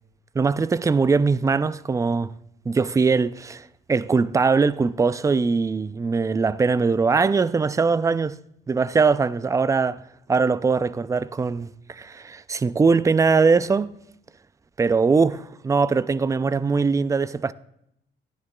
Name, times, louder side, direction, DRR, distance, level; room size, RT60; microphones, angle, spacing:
voice 1, 0.4-2.3 2.7-8.4 8.7-10.0 10.3-13.9 14.8-17.5, right 4 dB, 15° right, 0.3 m, -21 dB
12.5 x 10.5 x 2.2 m
cardioid pair, 90°, 20 cm